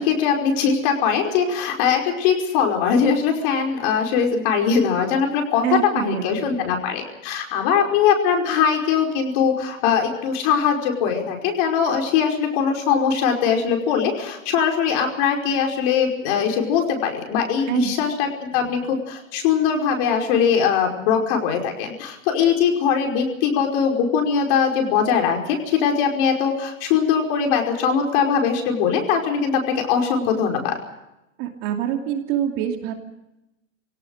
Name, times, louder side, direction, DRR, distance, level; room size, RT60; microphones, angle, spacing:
voice 1, 0.0-5.6 5.9-30.8, left 7 dB, 40° left, 2 dB, 5.3 m, -21 dB
voice 2, 5.6-6.6 17.7-17.9 18.5-18.7 31.4-32.9, right 10 dB, 35° right, 4 dB, 2.7 m, -26 dB
27.0 x 18.0 x 6.5 m, 0.92 s
hypercardioid pair, 145°, 39 cm